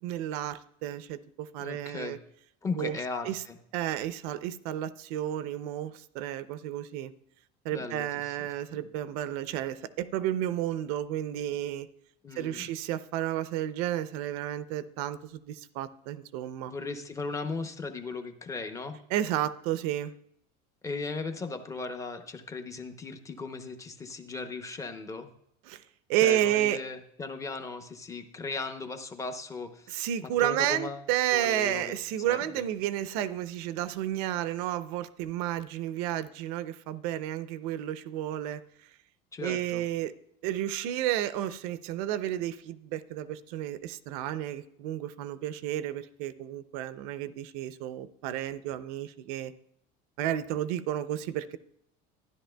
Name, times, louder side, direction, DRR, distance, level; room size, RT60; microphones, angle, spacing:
voice 1, 0.0-2.2 2.8-3.4 3.7-7.1 7.6-11.9 12.4-16.7 19.1-20.1 25.7-25.8 26.1-26.8 29.9-38.6 39.4-40.1 40.4-49.5 50.2-51.6, right 12 dB, 75° right, 14 dB, 0.5 m, -31 dB
voice 2, 1.6-2.2 2.6-3.6 7.7-8.4 12.2-12.7 16.7-19.0 20.8-25.3 26.2-31.0 31.3-32.7 39.3-39.9, left 3 dB, 15° left, 7 dB, 0.7 m, -37 dB
13.0 x 10.5 x 2.2 m, 0.73 s
cardioid pair, 155°, 19 cm